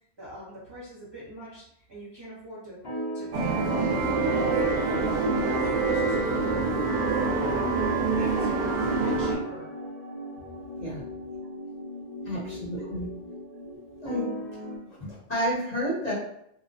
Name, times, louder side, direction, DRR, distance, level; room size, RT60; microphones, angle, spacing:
voice 1, 0.2-2.8 3.1-5.0 5.3-6.8 7.2-7.8 8.1-9.7 10.4-10.8 12.2-12.3 12.8-12.9, equal, 30° right, -8 dB, 0.7 m, -42 dB
sound 1, 2.8-14.8, right 1 dB, 60° left, 1.4 m, -38 dB
sound 2, 3.3-9.3, right 3 dB, 60° right, 0.7 m, -25 dB
voice 2, 12.2-13.1 14.0-14.3 14.8-16.1, equal, 40° left, -8 dB, 1.0 m, -30 dB
2.8 x 2.0 x 2.6 m, 0.75 s
omnidirectional pair, 1.0 m